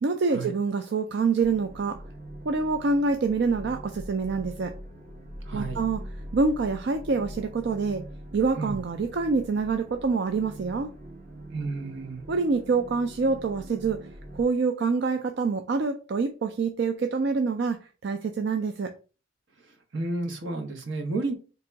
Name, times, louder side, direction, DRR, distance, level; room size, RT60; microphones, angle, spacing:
voice 1, 0.0-2.0 2.4-4.7 5.5-6.0 6.3-8.0 8.3-10.9 12.3-14.1 14.3-18.9, right 4 dB, 60° right, 0.4 m, -26 dB
sound 1, 1.4-14.4, right 1 dB, 45° right, 0.8 m, -42 dB
voice 2, 5.5-5.8 8.6-8.8 11.5-12.2 19.9-21.3, right 2 dB, 80° right, 1.0 m, -31 dB
3.5 x 2.9 x 4.6 m
head